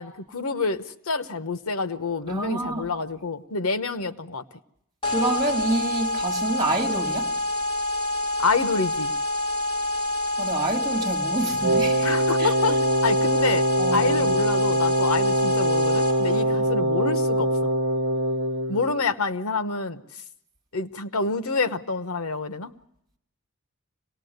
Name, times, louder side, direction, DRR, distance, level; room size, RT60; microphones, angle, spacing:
voice 1, 0.0-4.4 8.4-9.1 12.0-12.7 13.0-13.7 13.9-17.7 18.7-20.0 20.7-22.7, left 4 dB, 85° left, 1.1 m, -27 dB
voice 2, 2.3-2.9 5.0-7.3 10.4-12.1 12.4-12.8 13.8-14.3 16.4-16.6, right 2 dB, 20° right, 3.1 m, -28 dB
sound 1, 5.0-16.4, left 1 dB, 25° left, 3.7 m, -27 dB
Wind instrument woodwind instrument, 11.6-18.9, right 1 dB, 60° right, 1.1 m, -23 dB
26.0 x 19.0 x 8.0 m
head